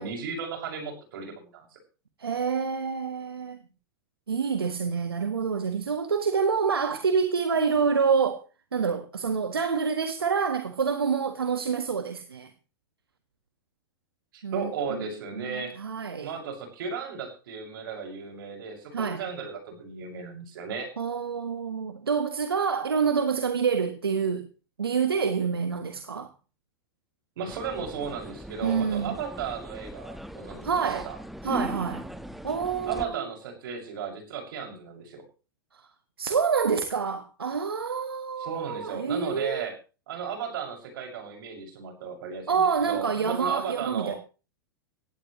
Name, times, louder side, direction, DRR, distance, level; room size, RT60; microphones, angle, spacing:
voice 1, 0.0-1.8 14.3-15.7 16.2-20.9 27.4-31.2 32.9-35.2 38.4-39.7 40.1-44.2, right 6 dB, 65° right, 6.6 m, -35 dB
voice 2, 2.2-3.6 4.3-8.4 8.7-12.5 14.4-15.1 15.3-16.3 18.9-19.2 21.0-24.5 24.8-26.3 28.6-29.2 30.6-31.1 31.4-32.1 32.4-33.3 36.2-39.7 42.5-44.1, right 6 dB, 90° right, 1.6 m, -27 dB
sound 1, 27.5-33.1, equal, ahead, 1.4 m, -39 dB
18.0 x 16.5 x 3.2 m
hypercardioid pair, 100°, 12 cm